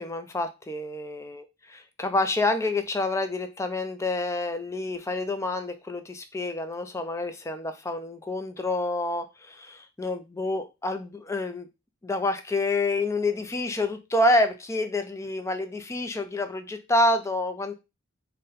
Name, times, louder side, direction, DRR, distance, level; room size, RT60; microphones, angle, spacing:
voice 1, 0.0-1.4 1.7-11.7 12.0-17.7, left 2 dB, 15° left, 0.4 m, -28 dB
3.8 x 2.2 x 4.0 m
head